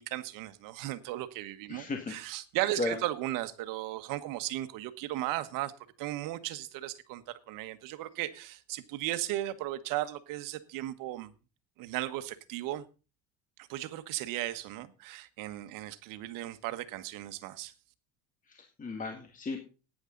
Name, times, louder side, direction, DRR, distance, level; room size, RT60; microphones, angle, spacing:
voice 1, 0.0-5.7 6.0-11.3 11.8-12.8 13.7-17.7, right 15 dB, 70° right, 1.4 m, -36 dB
voice 2, 1.7-2.1 2.8-3.0 18.5-19.6, left 3 dB, 25° left, 2.0 m, -35 dB
14.5 x 10.0 x 3.9 m
cardioid pair, 125°, 34 cm